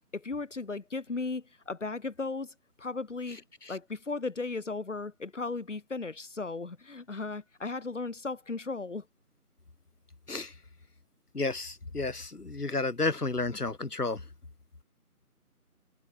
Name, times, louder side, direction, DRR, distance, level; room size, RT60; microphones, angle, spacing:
voice 1, 0.1-3.4 3.7-9.0, left 3 dB, 50° left, 3.4 m, -36 dB
voice 2, 11.3-14.2, left 3 dB, 80° left, 3.0 m, -32 dB
figure-of-eight pair, 170°, 45 cm